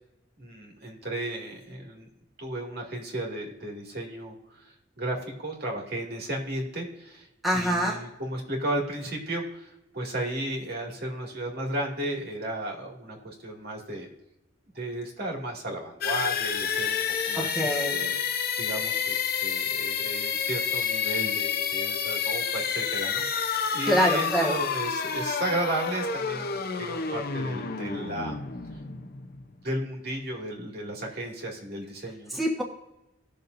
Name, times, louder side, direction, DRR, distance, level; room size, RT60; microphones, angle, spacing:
voice 1, 0.4-2.1 2.4-7.3 7.5-14.1 14.7-28.4 29.6-32.4, right 1 dB, 55° right, 0 dB, 2.4 m, -34 dB
voice 2, 7.4-8.0 17.3-18.0 23.9-24.6 32.4-32.6, equal, ahead, -3 dB, 1.3 m, -25 dB
sound 1, 16.0-29.7, left 7 dB, 50° left, 0.8 m, -29 dB
19.5 x 6.7 x 2.7 m, 0.90 s
head